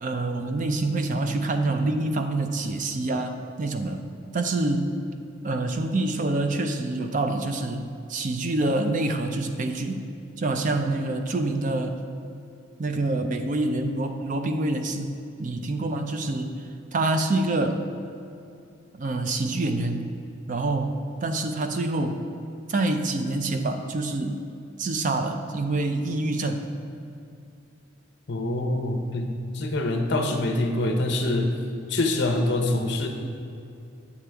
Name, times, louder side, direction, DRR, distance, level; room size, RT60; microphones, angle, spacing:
voice 1, 0.0-4.1 4.3-5.0 5.4-10.0 10.4-12.0 12.8-16.6 16.9-17.8 18.9-20.1 20.5-22.2 22.7-24.4 24.8-26.7, right 2 dB, 35° right, 6 dB, 0.4 m, -26 dB
voice 2, 28.3-31.5 31.9-33.1, left 2 dB, 55° left, 3 dB, 0.7 m, -25 dB
8.2 x 7.5 x 3.4 m, 2.6 s
head